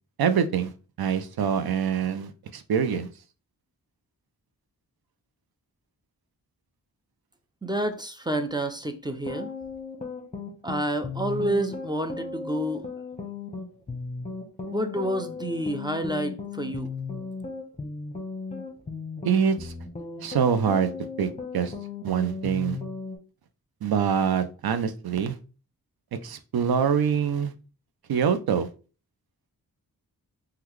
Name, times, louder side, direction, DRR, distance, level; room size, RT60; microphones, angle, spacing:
voice 1, 0.2-0.7 1.0-3.1 19.3-19.7 20.2-20.9 21.2-21.3 21.5-21.7 22.0-22.8 23.8-25.4 26.2-27.5 28.1-28.7, right 7 dB, 75° right, 0.5 m, -24 dB
voice 2, 7.6-9.5 10.6-12.8 14.7-16.9, right 1 dB, 10° right, 0.4 m, -29 dB
sound 1, 9.1-23.2, left 4 dB, 20° left, 0.8 m, -36 dB
3.6 x 2.3 x 3.0 m
wide cardioid pair, 80°, 37 cm